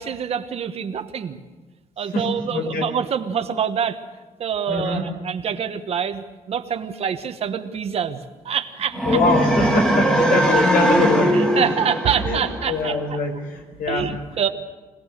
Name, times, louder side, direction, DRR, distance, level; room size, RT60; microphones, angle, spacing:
voice 1, 0.0-1.4 2.0-4.0 4.4-9.2 11.2-13.2 13.9-14.5, right 7 dB, 45° right, 8 dB, 1.2 m, -26 dB
voice 2, 2.1-2.9 4.7-5.1 9.0-11.4 12.2-14.1, left 3 dB, 80° left, 4 dB, 5.2 m, -23 dB
sound 1, 8.9-13.0, right 1 dB, 5° left, 2.1 m, -20 dB
25.0 x 18.0 x 6.6 m, 1.4 s
cardioid pair, 175°, 14 cm